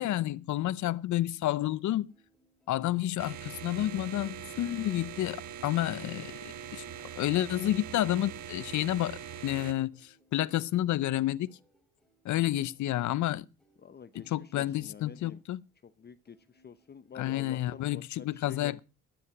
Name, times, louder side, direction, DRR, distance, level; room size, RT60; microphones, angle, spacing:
voice 1, 0.0-2.1 2.7-6.3 6.7-6.8 7.2-11.6 12.2-13.4 14.1-15.6 17.2-18.8, left 14 dB, 70° left, 0.7 m, -30 dB
sound 1, 1.6-17.6, equal, ahead, 3.1 m, -67 dB
sound 2, 3.2-9.7, right 9 dB, 70° right, 1.5 m, -42 dB
voice 2, 13.8-15.4 15.8-18.8, left 7 dB, 35° left, 0.8 m, -48 dB
13.0 x 9.8 x 5.9 m
cardioid pair, 90°, 30 cm